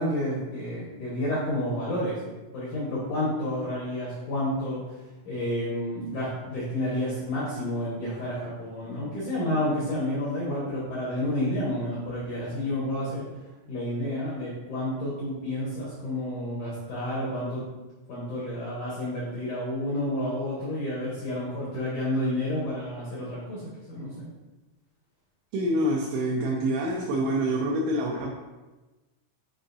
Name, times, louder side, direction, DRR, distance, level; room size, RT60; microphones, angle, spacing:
voice 1, 0.0-2.2 2.5-13.3 13.7-17.6 18.1-23.6 23.9-24.3, left 1 dB, 85° left, -8 dB, 1.7 m, -30 dB
voice 2, 25.5-28.4, right 1 dB, 85° right, -2 dB, 2.7 m, -26 dB
7.7 x 4.6 x 2.6 m, 1.2 s
omnidirectional pair, 5.7 m